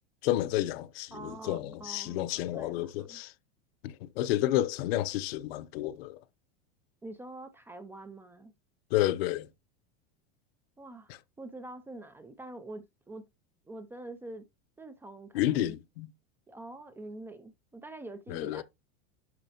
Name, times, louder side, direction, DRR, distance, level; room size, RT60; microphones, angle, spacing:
voice 1, 0.2-3.3 3.8-6.2 8.9-9.5 11.1-11.2 15.3-16.1 18.3-18.6, left 14 dB, 70° left, 0.8 m, -30 dB
voice 2, 1.1-3.2 7.0-8.5 10.8-13.3 13.7-14.5 14.8-15.8 16.5-18.6, right 2 dB, 5° right, 0.3 m, -45 dB
11.0 x 4.0 x 2.8 m
supercardioid pair, 160°, 32 cm